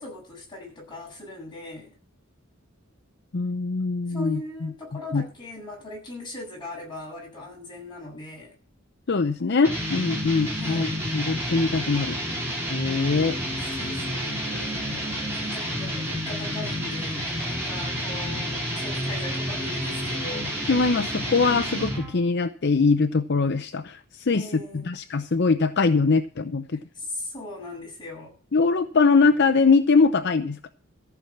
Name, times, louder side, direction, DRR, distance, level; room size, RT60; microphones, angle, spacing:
voice 1, 0.0-1.9 4.1-8.5 10.6-11.0 13.6-20.6 24.3-25.0 26.9-28.3, left 2 dB, 20° left, 7.6 m, -39 dB
voice 2, 3.3-4.7 5.1-5.2 9.1-12.2 12.7-13.4 20.7-24.5 24.7-26.8 28.5-30.6, left 4 dB, 55° left, 0.6 m, -22 dB
sound 1, 9.6-22.2, equal, 10° right, 4.3 m, -30 dB
14.5 x 5.9 x 8.6 m
head